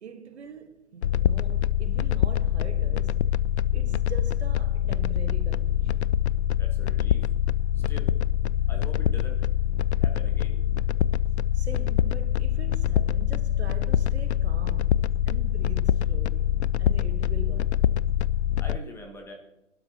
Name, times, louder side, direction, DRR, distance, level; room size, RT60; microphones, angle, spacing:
voice 1, 0.0-3.4 3.7-6.1 11.5-17.8, right 5 dB, 60° right, 1.4 m, -43 dB
sound 1, 1.0-18.8, left 10 dB, 60° left, 0.5 m, -24 dB
voice 2, 6.6-7.3 7.7-8.1 8.7-9.5 10.0-10.6 18.6-19.3, left 1 dB, 5° left, 1.3 m, -43 dB
24.5 x 12.0 x 2.8 m
figure-of-eight pair, 125°, 38 cm